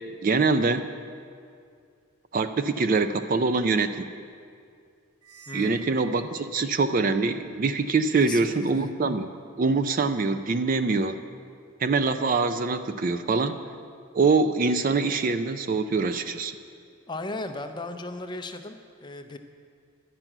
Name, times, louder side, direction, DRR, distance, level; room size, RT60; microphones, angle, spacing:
voice 1, 0.2-0.9 2.3-4.1 5.5-9.3 9.6-11.2 11.8-13.6 14.1-16.5, right 4 dB, 40° right, 10 dB, 0.3 m, -24 dB
sound 1, 5.2-7.1, right 6 dB, 85° right, 0.7 m, -44 dB
voice 2, 5.5-5.9 8.1-8.9 17.1-19.4, left 2 dB, 20° left, 7 dB, 0.5 m, -36 dB
11.0 x 6.0 x 8.9 m, 2.3 s
head